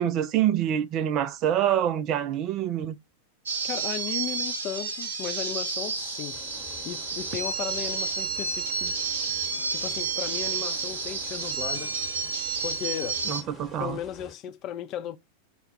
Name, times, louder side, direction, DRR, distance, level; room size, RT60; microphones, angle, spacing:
voice 1, 0.0-3.0 13.3-14.0, right 10 dB, 35° right, 0.4 m, -26 dB
sound 1, 3.5-13.4, right 4 dB, 65° right, 0.7 m, -30 dB
voice 2, 3.6-6.4 6.9-8.9 9.7-11.9 12.6-13.4 13.8-15.2, left 10 dB, 35° left, 0.4 m, -35 dB
sound 2, 6.3-14.3, left 2 dB, 10° left, 1.0 m, -48 dB
2.3 x 2.2 x 3.7 m
figure-of-eight pair, 90°, 0 cm